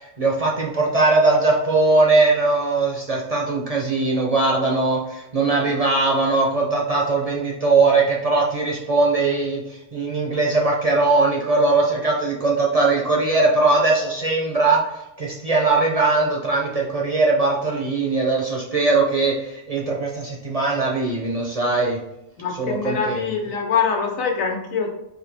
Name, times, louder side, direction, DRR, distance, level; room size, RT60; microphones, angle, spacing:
voice 1, 0.0-14.8 15.2-22.0 22.6-23.2, right 3 dB, 50° right, -2 dB, 0.4 m, -20 dB
voice 2, 22.4-24.9, left 6 dB, 75° left, 2 dB, 1.2 m, -24 dB
4.1 x 2.8 x 3.3 m, 0.88 s
omnidirectional pair, 1.4 m